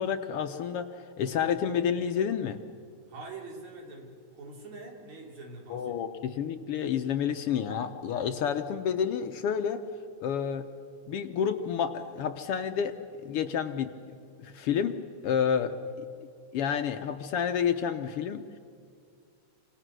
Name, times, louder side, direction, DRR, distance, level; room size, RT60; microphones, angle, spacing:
voice 1, 0.0-2.6 5.7-9.8 10.2-10.7 11.1-13.0 13.2-13.9 14.4-14.9 15.2-15.7 16.5-18.4, left 8 dB, 75° left, 7 dB, 1.4 m, -29 dB
voice 2, 3.1-5.9 15.9-16.0, right 3 dB, 60° right, 0 dB, 4.5 m, -44 dB
28.5 x 26.0 x 6.2 m, 2.3 s
omnidirectional pair, 3.5 m